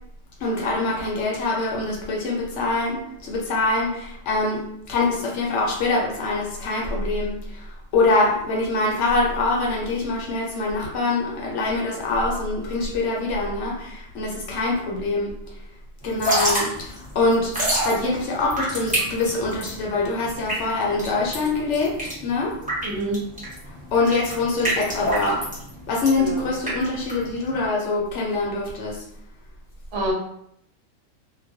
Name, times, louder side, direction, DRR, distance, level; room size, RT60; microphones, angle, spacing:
voice 1, 0.4-15.3 16.0-17.5 17.8-22.6 23.9-25.5 25.9-29.0, left 3 dB, 65° left, -2 dB, 0.9 m, -24 dB
Drip / Trickle dribble, 16.1-27.7, right 1 dB, 10° right, 0.6 m, -28 dB
voice 2, 22.8-23.2 26.1-26.5 29.9-30.1, right 1 dB, 70° right, -1 dB, 0.8 m, -27 dB
2.3 x 2.2 x 2.6 m, 0.73 s
omnidirectional pair, 1.4 m